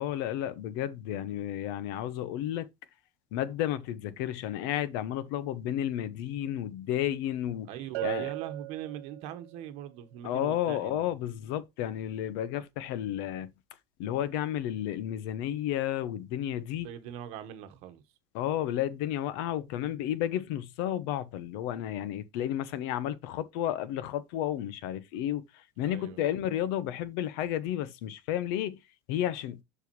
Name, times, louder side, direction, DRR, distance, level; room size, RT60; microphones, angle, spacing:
voice 1, 0.0-2.7 3.3-7.7 8.0-8.3 10.2-13.5 14.0-16.9 18.3-25.4 25.8-28.8 29.1-29.6, left 11 dB, 70° left, 0.9 m, -32 dB
voice 2, 7.7-11.1 16.8-18.0 25.8-26.3, right 10 dB, 60° right, 1.4 m, -41 dB
Bell, 7.9-9.6, right 24 dB, 80° right, 0.5 m, -37 dB
7.2 x 6.5 x 3.1 m
cardioid pair, 160°, 13 cm